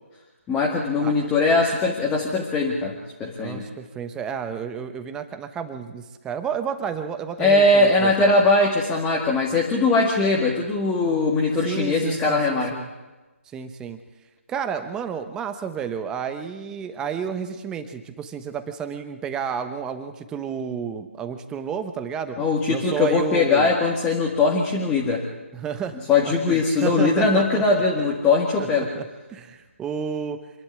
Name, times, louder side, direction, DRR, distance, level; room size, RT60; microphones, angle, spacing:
voice 1, 0.5-3.7 7.4-12.7 22.4-25.2 26.1-28.9, left 3 dB, 10° left, -2 dB, 2.0 m, -20 dB
voice 2, 3.4-8.4 11.6-12.9 13.5-14.0 14.5-22.4 22.7-23.7 25.5-26.0 26.2-27.8 28.6-30.4, right 7 dB, 10° right, 9 dB, 1.0 m, -31 dB
26.0 x 11.5 x 9.6 m, 1.2 s
figure-of-eight pair, 155°, 7 cm